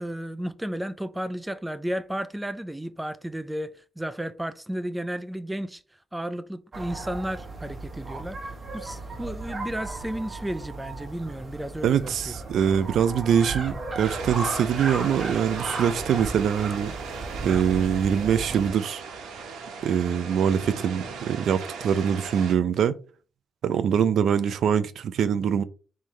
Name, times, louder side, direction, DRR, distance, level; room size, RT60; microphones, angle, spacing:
voice 1, 0.0-5.8 6.1-12.3, right 1 dB, 10° right, 0.4 m, -33 dB
sound 1, 6.7-18.7, right 3 dB, 35° right, 1.3 m, -36 dB
voice 2, 11.8-16.9 17.4-19.0 19.8-22.9 23.6-25.6, right 8 dB, 65° right, 0.4 m, -23 dB
sound 2, 14.0-22.5, right 5 dB, 85° right, 1.0 m, -37 dB
3.7 x 3.2 x 4.3 m
cardioid pair, 90°, 0 cm